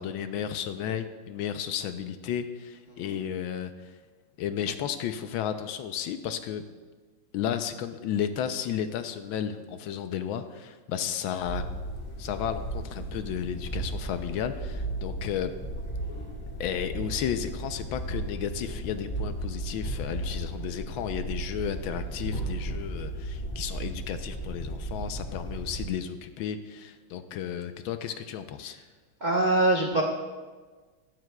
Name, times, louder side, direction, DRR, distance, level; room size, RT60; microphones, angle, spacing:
voice 1, 0.0-4.0 4.4-6.6 7.3-11.6 12.2-15.5 16.6-28.8, left 9 dB, 75° left, 9 dB, 1.3 m, -33 dB
sound 1, 11.4-25.9, right 1 dB, 25° left, 1.1 m, -35 dB
voice 2, 29.2-30.0, right 1 dB, 80° right, -1 dB, 0.4 m, -24 dB
15.0 x 12.5 x 2.2 m, 1.4 s
omnidirectional pair, 2.4 m